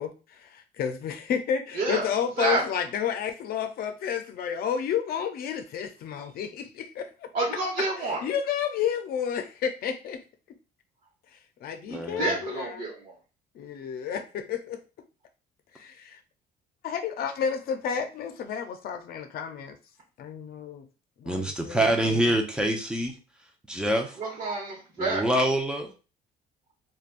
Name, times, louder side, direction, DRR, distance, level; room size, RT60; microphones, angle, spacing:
voice 1, 0.0-7.3 8.2-10.2 11.6-12.9 13.5-14.8 15.7-16.2 16.8-19.8 20.2-20.9 21.2-22.2, left 8 dB, 65° left, 7 dB, 0.6 m, -31 dB
voice 2, 1.7-2.1 2.4-2.6 7.3-8.2 11.9-13.1 24.2-25.2, right 2 dB, 50° right, -6 dB, 1.0 m, -29 dB
voice 3, 11.9-12.4 21.3-23.1 23.7-24.2 25.0-25.9, right 1 dB, 5° right, 3 dB, 0.6 m, -26 dB
3.3 x 2.3 x 2.4 m, 0.33 s
cardioid pair, 110°, 17 cm